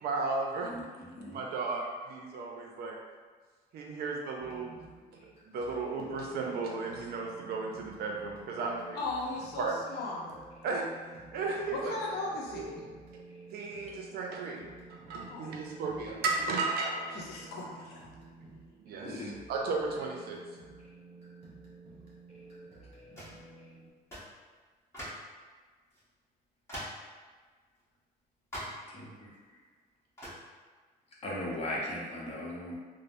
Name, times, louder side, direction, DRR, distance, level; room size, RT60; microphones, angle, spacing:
voice 1, 0.0-0.7 1.3-3.0 3.7-4.7 5.2-9.0 9.6-9.8 10.6-12.0 12.2-12.7 13.1-13.2 13.5-17.5 18.8-20.4, right 3 dB, 70° right, 0 dB, 0.5 m, -35 dB
voice 2, 0.7-1.4 19.0-19.4 28.9-29.3 31.2-32.7, left 1 dB, 40° left, -4 dB, 0.8 m, -38 dB
sound 1, 4.4-23.9, right 3 dB, 35° right, 1.2 m, -52 dB
voice 3, 8.9-10.4 11.7-12.8 15.3-15.7 17.1-18.1, left 2 dB, 75° left, -3 dB, 0.7 m, -37 dB
sound 2, 23.2-23.4 24.1-24.4 24.9-25.3 25.9-26.0 26.7-27.1 28.5-28.9 30.2-30.5, equal, 15° left, 1.1 m, -42 dB
3.2 x 2.0 x 2.5 m, 1.5 s
cardioid pair, 110°, 17 cm